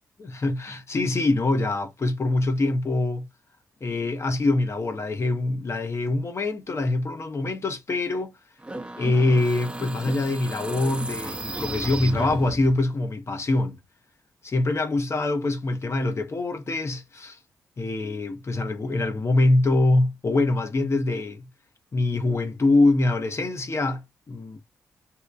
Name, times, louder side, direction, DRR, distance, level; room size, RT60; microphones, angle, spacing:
voice 1, 0.2-3.3 3.8-8.3 8.9-13.8 14.4-17.4 17.8-21.5 21.9-24.6, left 2 dB, 45° left, 0.8 m, -24 dB
sound 1, 8.6-12.9, right 1 dB, 15° right, 0.6 m, -34 dB
2.8 x 2.2 x 2.4 m
supercardioid pair, 50°, 7 cm